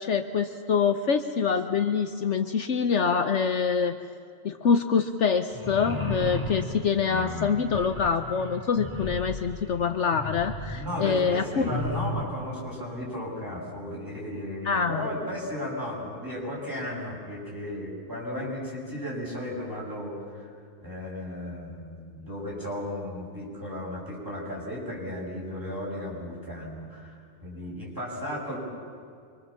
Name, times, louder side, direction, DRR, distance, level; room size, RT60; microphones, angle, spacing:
voice 1, 0.0-3.9 4.4-11.6 14.6-15.1, left 6 dB, 60° left, 7 dB, 1.1 m, -25 dB
feu court, 5.5-12.3, left 1 dB, 10° left, 3.3 m, -35 dB
voice 2, 10.7-20.5 20.8-28.6, left 1 dB, 15° right, -5 dB, 7.4 m, -35 dB
25.5 x 24.5 x 7.3 m, 2.3 s
omnidirectional pair, 1.4 m